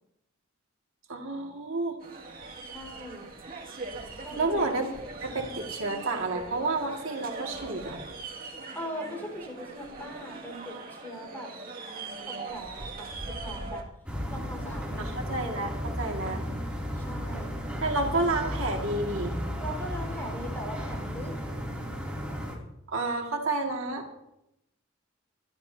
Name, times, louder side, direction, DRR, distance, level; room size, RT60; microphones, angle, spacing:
voice 1, 1.1-2.0 4.4-4.9 5.2-8.0 15.0-16.4 17.8-19.4 22.9-24.0, right 2 dB, 70° right, 1 dB, 2.1 m, -30 dB
sound 1, 2.0-13.8, right 3 dB, 45° right, 2.3 m, -41 dB
voice 2, 2.6-3.3 4.2-4.6 8.7-11.5 12.2-13.8 14.3-15.2 16.9-17.6 19.6-21.3, equal, 10° left, 0 dB, 4.8 m, -40 dB
sound 2, 14.1-22.6, equal, 5° right, 2.9 m, -34 dB
23.0 x 13.5 x 2.8 m, 0.83 s
head